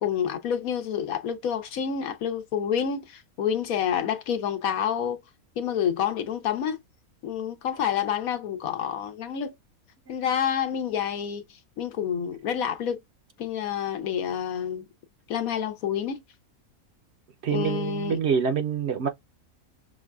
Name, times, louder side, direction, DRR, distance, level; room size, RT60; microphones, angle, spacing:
voice 1, 0.0-5.2 5.6-6.8 7.2-9.5 10.1-11.4 11.8-13.0 13.4-14.8 15.3-16.2 17.5-18.2, left 8 dB, 75° left, 1.2 m, -28 dB
voice 2, 17.4-19.1, right 7 dB, 60° right, 0.8 m, -26 dB
6.1 x 2.2 x 2.3 m
omnidirectional pair, 1.5 m